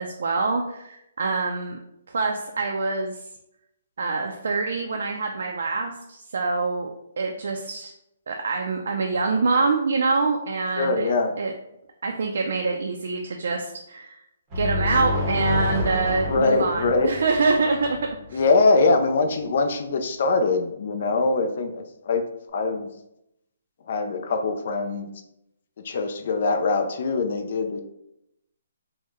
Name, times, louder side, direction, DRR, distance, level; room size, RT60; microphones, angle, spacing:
voice 1, 0.0-1.8 2.1-3.1 4.0-6.9 7.2-7.9 8.3-11.1 11.4-11.5 12.0-14.2 14.5-18.0 18.3-18.4, right 3 dB, 70° right, 2 dB, 0.4 m, -25 dB
voice 2, 10.8-11.3 16.3-17.1 18.3-22.2 22.5-22.9 23.9-25.1 25.8-27.8, left 3 dB, 50° left, 6 dB, 0.4 m, -23 dB
sound 1, 14.5-18.2, left 2 dB, 20° right, 0.7 m, -28 dB
3.6 x 2.1 x 3.1 m, 0.82 s
hypercardioid pair, 165°, 0 cm